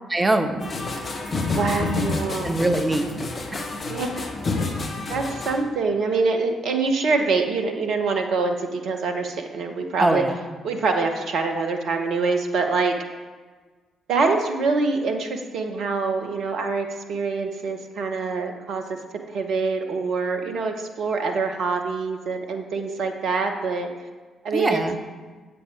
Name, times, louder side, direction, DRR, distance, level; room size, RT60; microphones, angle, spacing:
voice 1, 0.1-0.7 2.4-3.1 3.5-3.7 10.0-10.4 24.5-25.0, right 2 dB, 20° right, 6 dB, 1.2 m, -22 dB
sound 1, 0.6-5.6, left 3 dB, 40° left, 1.6 m, -28 dB
voice 2, 1.6-2.5 3.9-4.7 5.1-10.3 10.6-12.9 14.1-18.8 19.3-23.9 24.4-24.8, right 4 dB, 60° right, 4 dB, 1.0 m, -25 dB
9.8 x 8.2 x 5.0 m, 1.4 s
figure-of-eight pair, 40°, 0 cm